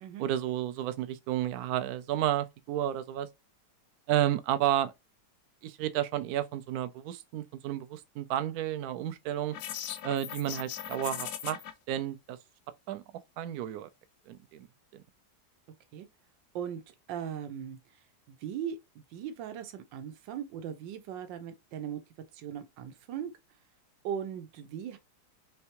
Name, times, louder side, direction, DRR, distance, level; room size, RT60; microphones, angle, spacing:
voice 1, 0.2-3.3 4.1-4.9 5.6-9.6 10.0-11.6 11.9-12.4 12.9-13.0 13.4-13.9 14.3-14.7, right 12 dB, 70° right, 0.9 m, -31 dB
sound 1, 9.5-11.7, left 10 dB, 70° left, 1.1 m, -39 dB
voice 2, 17.1-17.8 18.3-22.0 22.3-23.3 24.0-25.0, right 9 dB, 90° right, 1.4 m, -38 dB
4.6 x 3.3 x 2.9 m
omnidirectional pair, 1.9 m